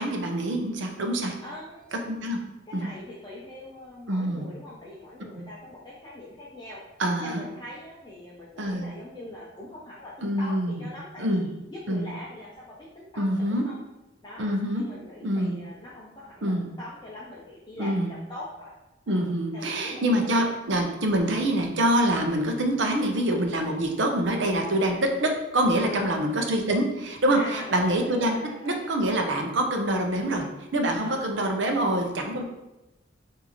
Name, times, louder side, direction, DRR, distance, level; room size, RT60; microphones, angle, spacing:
voice 1, 0.0-1.3 2.1-2.4 2.7-2.9 4.1-4.4 5.3-5.4 7.0-7.4 8.6-8.9 10.2-10.9 11.2-11.5 11.9-12.1 13.2-13.6 14.4-14.8 15.2-15.6 16.4-16.7 17.8-18.1 19.1-28.4 28.6-32.4, right 1 dB, 70° right, 3 dB, 0.7 m, -25 dB
voice 2, 1.4-2.1 2.7-6.8 7.2-13.7 14.2-18.7 19.1-19.3 19.5-20.9 25.9-26.2 27.3-28.9 31.0-32.1, left 1 dB, 20° left, -6 dB, 0.6 m, -42 dB
6.2 x 2.7 x 3.0 m, 0.99 s
head